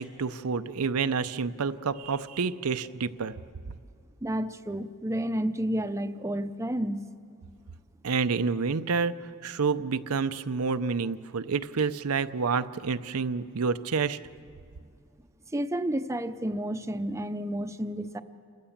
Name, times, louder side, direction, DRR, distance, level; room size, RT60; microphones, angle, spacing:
voice 1, 0.0-3.3 8.0-9.1 9.4-14.2, right 5 dB, 90° right, 11 dB, 0.6 m, -28 dB
voice 2, 4.2-7.1 15.5-18.2, right 1 dB, 15° right, 9 dB, 0.6 m, -31 dB
28.0 x 16.0 x 7.3 m, 2.2 s
head